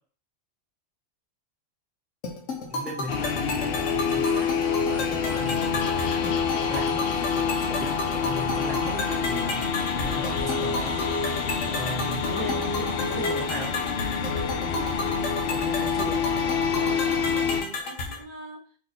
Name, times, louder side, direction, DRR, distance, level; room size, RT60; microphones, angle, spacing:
sound 1, 2.2-18.2, left 2 dB, 90° left, 1.2 m, -33 dB
voice 1, 2.7-6.2 6.7-9.6 10.0-11.4 11.7-13.8 15.5-16.3, right 1 dB, ahead, -1 dB, 0.5 m, -38 dB
sound 2, 3.1-17.6, left 6 dB, 60° left, 0.7 m, -27 dB
voice 2, 11.4-11.8 16.7-18.8, right 4 dB, 45° right, 1 dB, 0.9 m, -41 dB
3.5 x 2.6 x 4.0 m, 0.39 s
omnidirectional pair, 1.3 m